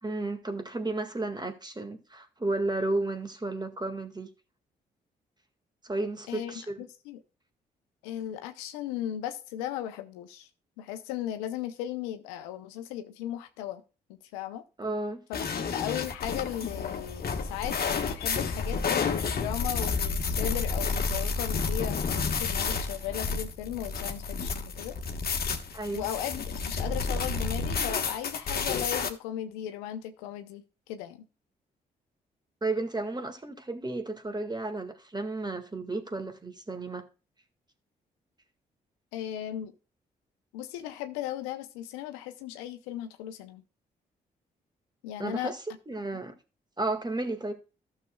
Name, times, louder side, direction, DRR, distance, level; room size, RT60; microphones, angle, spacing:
voice 1, 0.0-4.3 5.8-6.8 14.8-15.2 25.7-26.1 32.6-37.1 45.2-46.3 46.8-47.5, right 2 dB, 20° right, 1.9 m, -33 dB
voice 2, 6.3-7.2 8.0-10.5 10.8-13.8 14.3-14.6 15.3-25.0 25.9-31.2 39.1-39.7 40.5-43.6 45.0-45.5 46.1-46.2, left 11 dB, 85° left, 0.7 m, -36 dB
sound 1, 15.3-29.1, left 5 dB, 50° left, 1.4 m, -30 dB
15.0 x 6.7 x 2.3 m
hypercardioid pair, 40°, 20 cm